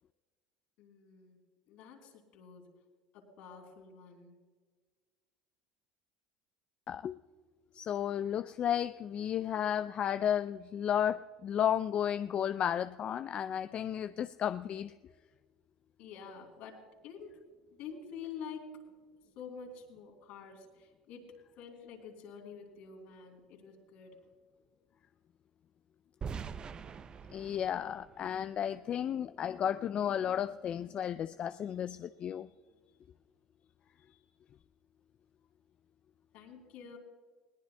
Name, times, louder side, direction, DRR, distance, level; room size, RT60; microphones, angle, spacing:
voice 1, 0.8-1.4 1.7-2.7 3.1-4.4 16.0-17.4 17.7-18.9 19.4-21.3 21.6-24.2 36.3-37.0, left 6 dB, 70° left, 0 dB, 3.6 m, -48 dB
voice 2, 7.7-14.9 27.3-32.5, left 9 dB, 45° left, 12 dB, 0.4 m, -33 dB
sound 1, 26.2-29.2, right 6 dB, 35° right, 0.6 m, -44 dB
20.5 x 18.5 x 2.2 m, 1.4 s
hypercardioid pair, 85°, 3 cm